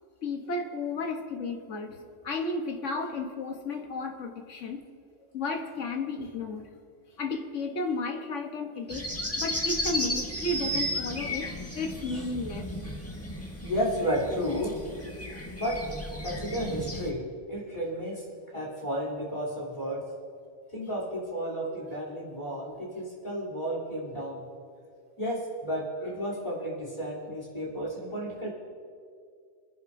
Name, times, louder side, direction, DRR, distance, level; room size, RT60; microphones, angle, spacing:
voice 1, 0.2-4.8 5.3-6.7 7.2-9.1 9.4-12.7 15.5-15.6 22.5-22.6, left 3 dB, 80° left, 4 dB, 1.5 m, -33 dB
sound 1, 8.9-17.1, equal, 10° left, 1.3 m, -34 dB
voice 2, 13.6-14.8 15.6-15.8 16.2-18.3 18.5-20.0 20.7-24.4 25.2-28.5, equal, 30° left, -5 dB, 3.5 m, -32 dB
30.0 x 10.5 x 2.7 m, 2.2 s
omnidirectional pair, 1.2 m